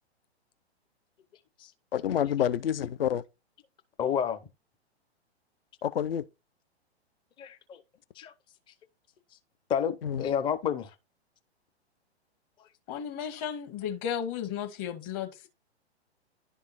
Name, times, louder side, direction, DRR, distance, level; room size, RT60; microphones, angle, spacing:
voice 1, 1.9-3.2 5.8-6.2 10.0-10.3, left 9 dB, 60° left, 0.6 m, -28 dB
voice 2, 4.0-4.4 7.4-7.8 8.2-8.3 9.7-10.9, left 8 dB, 15° left, 0.6 m, -30 dB
voice 3, 12.9-15.5, left 8 dB, 30° left, 1.5 m, -34 dB
11.0 x 3.7 x 4.1 m
figure-of-eight pair, 115°, 33 cm